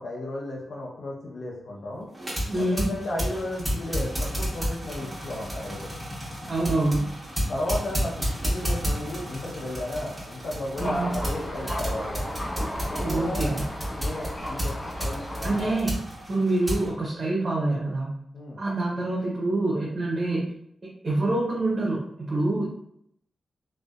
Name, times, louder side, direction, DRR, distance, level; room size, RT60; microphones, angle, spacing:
voice 1, 0.0-2.1 2.5-5.9 7.5-12.3 12.8-13.5 14.0-14.7 15.0-15.8 18.3-18.6, left 1 dB, 65° left, -3 dB, 0.5 m, -34 dB
sound 1, 2.1-16.9, equal, 10° right, 1.1 m, -32 dB
voice 2, 2.5-2.9 6.5-7.1 10.8-11.1 13.0-13.6 15.4-15.9 16.3-18.1 18.6-20.4 21.0-22.7, right 2 dB, 45° right, -5 dB, 0.7 m, -26 dB
Thunder, 10.7-15.7, equal, 30° left, 0.7 m, -34 dB
2.5 x 2.1 x 2.3 m, 0.72 s
cardioid pair, 65°, 0 cm